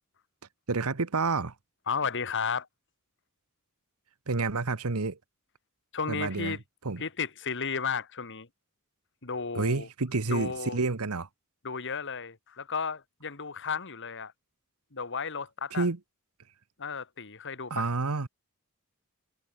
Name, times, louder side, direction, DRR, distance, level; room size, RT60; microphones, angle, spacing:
voice 1, 0.7-1.5 4.3-5.2 6.1-6.6 6.8-7.0 9.5-11.3 15.7-16.0 17.7-18.3, right 3 dB, 85° right, 1.1 m, -29 dB
voice 2, 1.9-2.7 5.9-6.6 7.0-8.5 9.2-9.9 10.3-10.8 11.6-14.3 14.9-15.9 16.8-17.9, left 5 dB, 60° left, 2.4 m, -33 dB
head